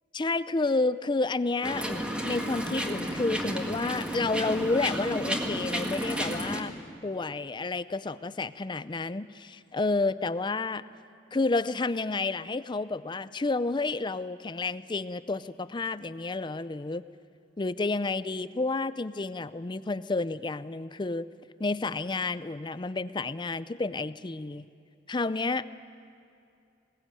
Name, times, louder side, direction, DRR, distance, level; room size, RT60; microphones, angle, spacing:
voice 1, 0.1-6.7 7.0-10.8 11.3-17.0 17.6-21.2 21.6-24.7 25.1-25.6, left 3 dB, 25° left, 15 dB, 0.5 m, -30 dB
sound 1, 1.6-6.6, equal, 5° right, 1.8 m, -32 dB
21.0 x 19.0 x 9.1 m, 2.6 s
head